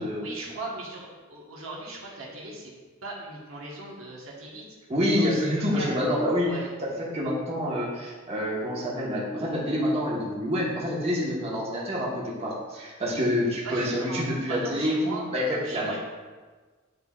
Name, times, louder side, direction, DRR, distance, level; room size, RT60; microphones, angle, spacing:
voice 1, 0.0-2.7 3.0-4.6 5.1-6.0 6.4-6.7 13.6-15.2 15.6-16.0, right 2 dB, 75° right, -4 dB, 1.3 m, -38 dB
voice 2, 4.9-6.5 6.8-15.9, equal, 30° right, -6 dB, 1.3 m, -27 dB
9.5 x 4.2 x 2.4 m, 1.4 s
head